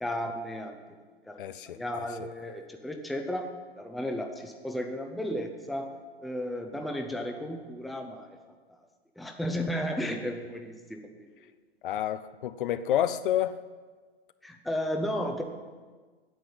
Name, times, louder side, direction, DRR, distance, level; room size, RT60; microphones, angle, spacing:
voice 1, 0.0-0.7 1.3-1.4 1.6-5.9 6.2-8.4 9.2-11.3 14.4-15.4, equal, ahead, 4 dB, 0.6 m, -34 dB
voice 2, 1.4-1.8 11.8-13.6, left 11 dB, 55° left, 13 dB, 0.7 m, -29 dB
9.6 x 7.7 x 8.6 m, 1.4 s
hypercardioid pair, 130°, 31 cm